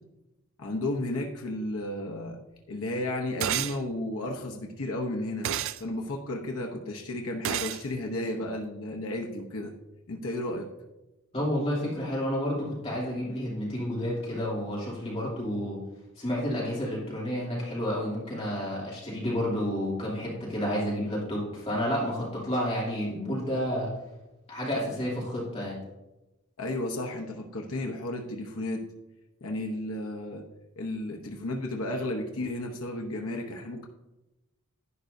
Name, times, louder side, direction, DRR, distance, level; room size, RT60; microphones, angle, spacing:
voice 1, 0.6-2.4 2.7-5.5 5.8-9.7 10.1-10.7 26.6-28.8 29.4-30.5 30.8-33.9, left 1 dB, 70° left, 1 dB, 0.9 m, -33 dB
sound 1, 3.4-3.8 5.4-5.8 7.4-7.8, right 10 dB, 60° right, 0.3 m, -29 dB
voice 2, 11.3-15.8 16.2-23.9 24.5-25.8, equal, 25° left, -6 dB, 2.8 m, -30 dB
11.0 x 9.6 x 2.7 m, 1.0 s
head